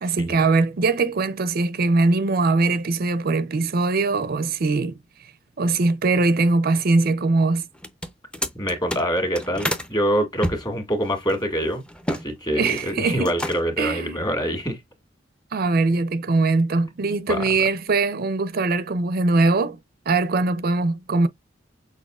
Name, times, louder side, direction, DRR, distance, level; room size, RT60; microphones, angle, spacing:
voice 1, 0.0-5.0 5.6-7.7 12.6-13.3 13.8-14.2 15.5-19.8 20.1-21.3, right 3 dB, 50° right, 0.5 m, -21 dB
sound 1, 7.7-9.9 10.4-12.3 12.5-12.9 13.2-13.8, equal, 5° left, 0.6 m, -30 dB
voice 2, 8.5-11.8 12.1-14.8 17.3-17.4, equal, 20° left, 1.9 m, -25 dB
6.4 x 3.4 x 2.4 m
head